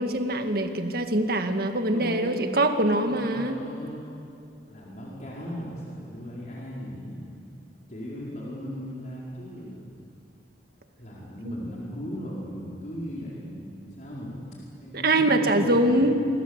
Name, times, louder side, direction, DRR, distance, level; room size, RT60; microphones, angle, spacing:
voice 1, 0.0-3.6 14.9-16.1, right 1 dB, 60° right, 6 dB, 1.9 m, -23 dB
voice 2, 1.9-2.5 3.0-4.1 4.7-7.2 7.9-9.9 11.0-16.1, equal, 45° left, -5 dB, 4.8 m, -37 dB
27.0 x 23.0 x 8.2 m, 2.6 s
head